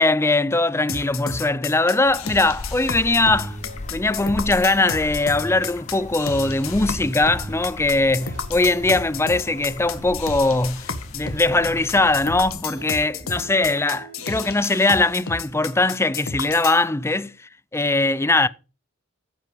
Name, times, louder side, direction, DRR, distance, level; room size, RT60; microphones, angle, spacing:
voice 1, 0.0-3.6 3.9-10.8 11.1-17.4 17.7-18.5, left 2 dB, 15° left, 0.5 m, -21 dB
sound 1, 0.9-16.8, left 5 dB, 75° left, 1.7 m, -32 dB
sound 2, 2.0-12.5, left 2 dB, 35° left, 0.8 m, -38 dB
sound 3, 3.1-14.9, right 1 dB, 60° right, 6.1 m, -40 dB
15.0 x 6.2 x 5.2 m
head